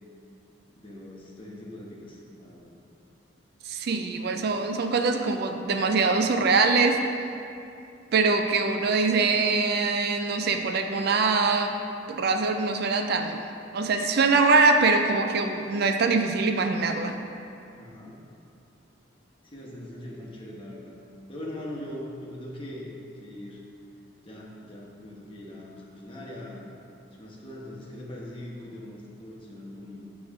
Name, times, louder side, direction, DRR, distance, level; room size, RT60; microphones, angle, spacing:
voice 1, 0.8-2.7 17.7-18.2 19.4-21.0 21.3-22.9 23.2-23.6 24.2-26.6 27.1-30.1, left 1 dB, 30° left, -3 dB, 1.1 m, -41 dB
voice 2, 3.7-7.0 8.1-11.7 12.1-13.4 13.7-17.2, right 4 dB, 60° right, 6 dB, 0.4 m, -23 dB
8.6 x 3.1 x 5.9 m, 2.6 s
head